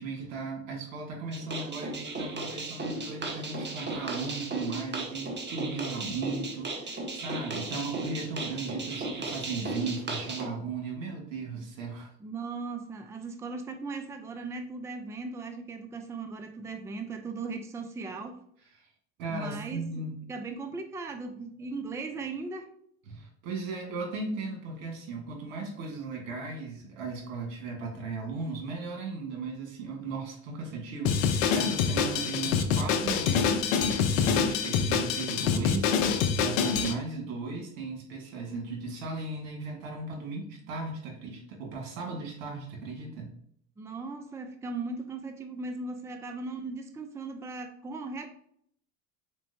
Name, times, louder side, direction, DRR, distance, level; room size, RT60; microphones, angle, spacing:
voice 1, 0.0-12.1 19.2-20.2 23.1-43.3, right 4 dB, 75° right, 1 dB, 1.8 m, -37 dB
sound 1, 1.3-10.5, right 2 dB, 25° right, 1.2 m, -36 dB
voice 2, 12.2-18.4 19.3-19.9 20.3-22.7 43.8-48.3, right 3 dB, 5° right, 6 dB, 0.5 m, -38 dB
Drum kit, 31.0-36.9, left 7 dB, 85° left, 0.7 m, -26 dB
4.5 x 4.1 x 2.7 m, 0.66 s
supercardioid pair, 85°, 39 cm